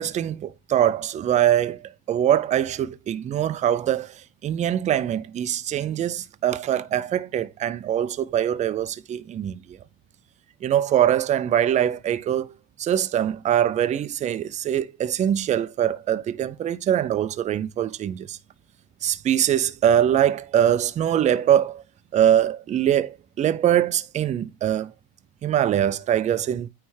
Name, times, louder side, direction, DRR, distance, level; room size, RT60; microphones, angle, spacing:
voice 1, 0.0-1.8 2.1-9.6 10.6-12.5 12.8-18.4 19.0-21.8 22.1-24.9 25.4-26.7, right 10 dB, 20° right, 0.3 m, -23 dB
9.2 x 3.2 x 4.7 m
cardioid pair, 150°, 40 cm